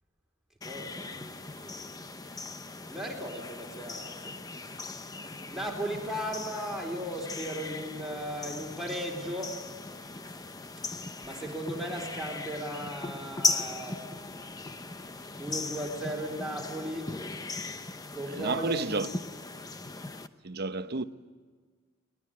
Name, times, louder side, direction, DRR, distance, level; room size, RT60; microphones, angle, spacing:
sound 1, 0.6-20.3, left 3 dB, 15° left, 0.8 m, -38 dB
voice 1, 0.6-1.9 2.8-4.6 5.2-9.6 10.9-14.4 15.4-17.1 18.1-19.0, equal, ahead, 4.1 m, -37 dB
voice 2, 18.3-19.1 20.4-21.0, right 3 dB, 50° right, 0.8 m, -31 dB
22.5 x 19.5 x 9.5 m
head